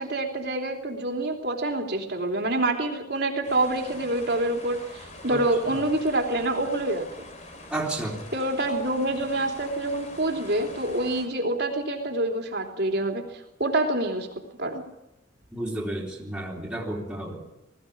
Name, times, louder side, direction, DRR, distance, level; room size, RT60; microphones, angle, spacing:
voice 1, 0.0-7.3 8.3-13.2 13.6-14.3 14.6-14.8, right 2 dB, 55° right, 2 dB, 3.4 m, -26 dB
sound 1, 3.4-11.3, left 2 dB, 35° left, 3.1 m, -44 dB
voice 2, 7.7-8.3 15.5-17.5, right 1 dB, 5° right, -3 dB, 3.6 m, -32 dB
20.5 x 15.5 x 8.7 m, 0.91 s
head